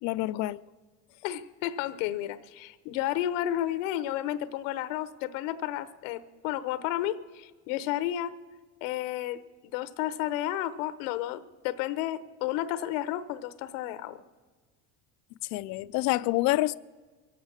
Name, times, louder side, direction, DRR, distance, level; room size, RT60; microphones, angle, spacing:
voice 1, 0.0-0.6 15.4-16.8, left 18 dB, 50° left, 0.4 m, -27 dB
voice 2, 1.2-8.3 8.8-9.4 9.7-14.2, left 13 dB, 90° left, 0.9 m, -32 dB
23.5 x 8.2 x 6.4 m
cardioid pair, 145°, 36 cm